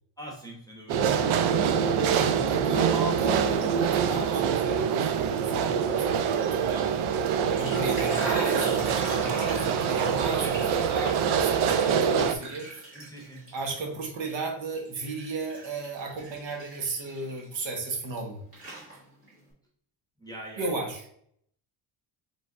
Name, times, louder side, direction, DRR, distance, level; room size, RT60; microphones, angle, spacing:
voice 1, 0.2-1.6 12.9-13.4 20.2-20.9, right 1 dB, 10° left, -1 dB, 0.8 m, -44 dB
sound 1, 0.9-12.3, right 7 dB, 85° right, 0.6 m, -25 dB
voice 2, 2.1-7.0 7.5-12.7 13.5-18.4 20.6-21.2, right 3 dB, 65° right, 2 dB, 1.2 m, -34 dB
sound 2, 7.4-13.7 14.1-18.2 18.5-19.3, right 2 dB, 25° right, 1.8 m, -40 dB
5.0 x 3.4 x 2.4 m, 0.66 s
cardioid pair, 170°, 48 cm